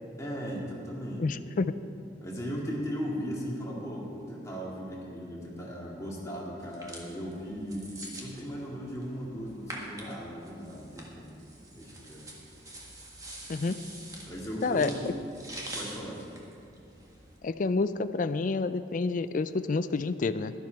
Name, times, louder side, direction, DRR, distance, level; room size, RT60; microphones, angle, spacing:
voice 1, 0.2-1.4 2.2-7.9 8.2-11.4 11.7-12.2 14.3-15.2 15.7-16.2, equal, 15° left, -5 dB, 2.3 m, -37 dB
voice 2, 1.2-1.7 13.5-13.8 14.6-14.9 17.4-20.5, left 3 dB, 45° left, 12 dB, 0.4 m, -28 dB
sound 1, 6.6-17.4, right 1 dB, 20° right, 1.6 m, -46 dB
12.0 x 12.0 x 4.7 m, 2.6 s
head